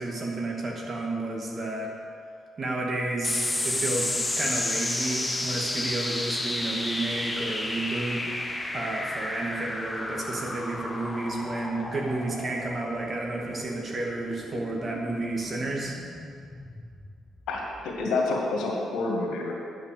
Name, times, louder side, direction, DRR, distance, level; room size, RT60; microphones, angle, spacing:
voice 1, 0.0-1.9 2.6-8.2 8.7-15.9, right 2 dB, 40° right, -1 dB, 2.1 m, -31 dB
sound 1, 3.2-18.0, left 1 dB, 10° left, 0.9 m, -32 dB
voice 2, 17.5-19.5, left 3 dB, 85° left, -2 dB, 2.0 m, -28 dB
10.5 x 6.1 x 6.7 m, 2.2 s
cardioid pair, 90°, 0 cm